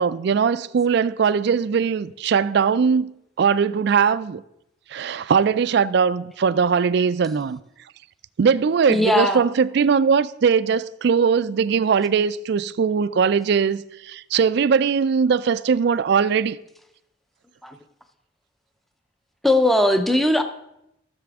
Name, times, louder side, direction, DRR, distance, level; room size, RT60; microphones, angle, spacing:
voice 1, 0.0-3.1 3.4-4.4 4.9-7.6 8.4-16.6, right 6 dB, 60° right, 0.3 m, -20 dB
voice 2, 8.9-9.4 17.6-17.7 19.4-20.4, left 1 dB, ahead, 0.6 m, -19 dB
13.5 x 6.8 x 3.6 m
head